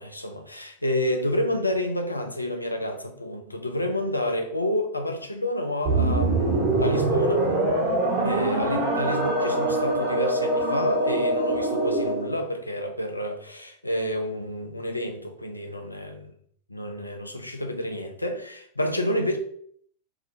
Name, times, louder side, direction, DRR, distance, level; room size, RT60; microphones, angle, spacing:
voice 1, 0.0-7.5 8.2-16.3 16.7-19.4, left 1 dB, 85° left, 0.4 m, -29 dB
sound 1, 5.8-12.3, right 2 dB, 45° right, 1.1 m, -24 dB
2.5 x 2.2 x 2.7 m
figure-of-eight pair, 90°, 0 cm